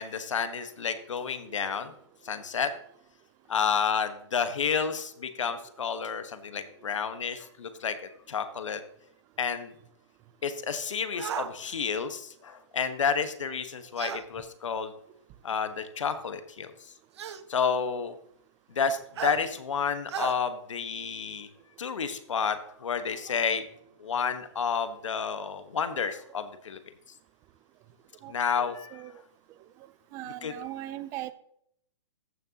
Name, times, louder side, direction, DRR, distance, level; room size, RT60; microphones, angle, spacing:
voice 1, 0.0-1.9 2.2-2.7 3.5-7.9 8.3-8.8 9.4-9.7 10.4-14.9 15.4-16.7 17.5-18.1 18.7-21.5 21.8-23.7 24.0-26.8 28.3-29.0 30.2-30.5, left 6 dB, 90° left, 10 dB, 1.3 m, -30 dB
sound 1, 11.2-11.5 14.0-14.2 15.5-15.6 17.2-17.4 19.2-19.4 20.1-20.3, right 9 dB, 65° right, 0.8 m, -33 dB
voice 2, 28.2-29.1 30.1-31.3, right 14 dB, 20° right, 15 dB, 0.4 m, -39 dB
14.5 x 6.3 x 2.9 m, 0.69 s
hypercardioid pair, 155°, 15 cm